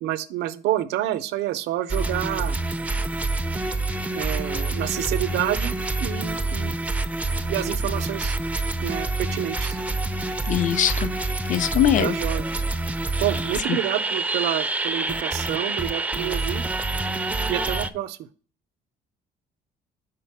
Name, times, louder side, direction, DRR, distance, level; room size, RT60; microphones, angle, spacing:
voice 1, 0.0-2.6 4.1-6.7 7.5-8.4 8.8-9.8 12.0-12.5 13.2-16.6 17.5-18.3, right 13 dB, 85° right, 13 dB, 0.5 m, -28 dB
sound 1, 1.9-17.9, right 2 dB, 10° right, 0.4 m, -27 dB
voice 2, 10.5-11.1 11.5-12.2 13.7-13.8, left 11 dB, 50° left, 15 dB, 0.5 m, -21 dB
5.0 x 4.1 x 5.8 m, 0.42 s
cardioid pair, 110°, 17 cm